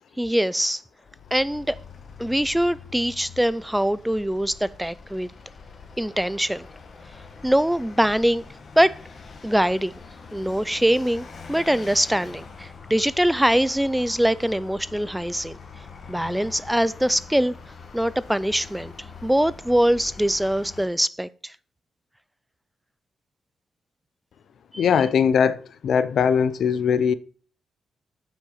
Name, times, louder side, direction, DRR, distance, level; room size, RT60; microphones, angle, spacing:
voice 1, 0.2-0.8 1.3-1.8 2.2-5.3 6.0-6.7 7.4-8.4 8.8-9.0 9.4-9.9 10.3-15.6 16.1-17.5 17.9-18.9 19.2-21.5 24.7-24.8, equal, 5° right, 0.4 m, -23 dB
Vehicle, 1.0-20.9, left 5 dB, 45° left, 1.5 m, -44 dB
voice 2, 24.8-27.1, left 7 dB, 65° left, 0.6 m, -20 dB
8.4 x 5.9 x 5.7 m
cardioid pair, 105°, 0 cm